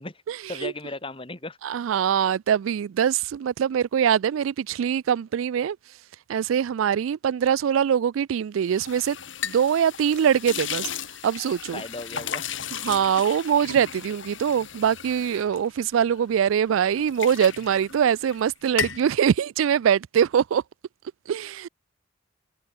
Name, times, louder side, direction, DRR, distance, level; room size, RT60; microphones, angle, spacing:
voice 1, 0.5-1.6 11.7-12.5, left 2 dB, 25° left, 2.8 m, -36 dB
voice 2, 1.6-5.8 6.3-9.2 9.4-10.9 11.2-11.8 12.8-20.6 21.3-21.7, right 8 dB, 90° right, 0.3 m, -23 dB
sound 1, 8.6-16.4 16.8-18.4 18.7-19.1, left 8 dB, 75° left, 4.0 m, -35 dB
head